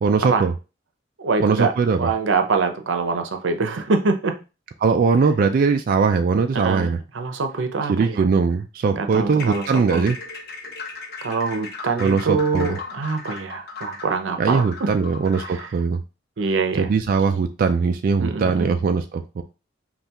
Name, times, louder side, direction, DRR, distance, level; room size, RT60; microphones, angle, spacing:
voice 1, 0.0-0.5 1.4-2.1 4.8-7.0 7.9-10.2 12.0-12.8 14.4-16.0 16.8-19.4, right 5 dB, 50° right, 6 dB, 0.3 m, -20 dB
voice 2, 1.2-1.7 2.0-4.3 6.5-8.2 8.9-10.0 11.2-14.9 15.4-15.7 16.4-16.9 17.3-17.4 18.2-18.7, right 4 dB, 85° right, 6 dB, 0.7 m, -24 dB
sound 1, 9.3-15.8, left 4 dB, 60° left, 0.9 m, -37 dB
5.5 x 2.4 x 2.9 m, 0.31 s
head